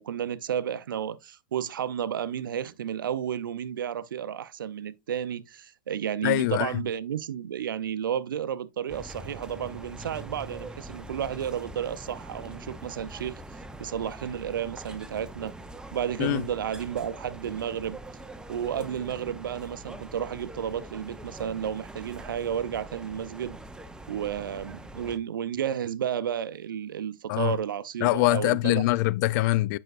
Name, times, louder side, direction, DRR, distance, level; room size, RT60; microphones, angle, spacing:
voice 1, 0.0-13.4 13.8-15.5 15.9-18.0 18.5-23.6 24.1-28.8, right 9 dB, 90° right, 0.5 m, -32 dB
voice 2, 6.2-6.8 16.2-16.4 27.3-27.6 28.0-29.8, left 18 dB, 60° left, 0.4 m, -24 dB
sound 1, 8.9-25.2, right 1 dB, 5° right, 0.7 m, -43 dB
9.0 x 5.7 x 2.5 m
hypercardioid pair, 105°, 11 cm